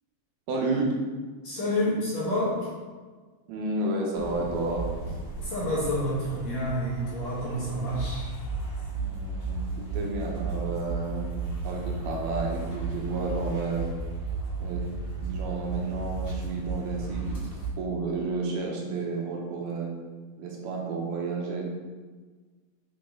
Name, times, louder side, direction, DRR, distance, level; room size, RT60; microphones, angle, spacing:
voice 1, 0.5-0.9 3.5-4.8 8.9-11.3 11.6-13.9 14.6-14.8 15.2-19.9 20.4-21.7, right 3 dB, 75° right, -1 dB, 2.9 m, -31 dB
voice 2, 1.4-2.7 5.4-8.3, equal, 55° left, -7 dB, 2.2 m, -28 dB
sound 1, 4.1-17.7, right 3 dB, 35° left, 2.0 m, -34 dB
7.0 x 6.0 x 3.8 m, 1.4 s
omnidirectional pair, 4.6 m